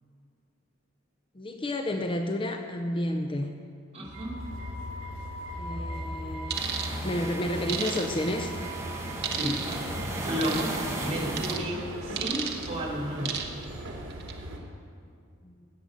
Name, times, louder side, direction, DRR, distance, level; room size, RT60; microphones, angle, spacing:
voice 1, 1.3-3.5 5.6-6.7 7.0-8.5 15.4-15.5, left 1 dB, 25° left, 5 dB, 0.5 m, -31 dB
voice 2, 3.9-4.3 9.3-9.6 10.3-10.7 11.0-13.4, equal, 35° right, -6 dB, 2.9 m, -32 dB
sound 1, 4.1-14.6, equal, 70° right, 2.0 m, -38 dB
sound 2, 6.5-11.5, right 1 dB, 15° right, 1.5 m, -35 dB
sound 3, 6.5-6.9 7.7-8.3 9.2-9.8 10.4-10.7 11.4-11.6 12.2-12.7 13.2-13.6 14.1-14.3, right 7 dB, 55° right, 1.0 m, -32 dB
15.5 x 8.3 x 5.1 m, 2.3 s
head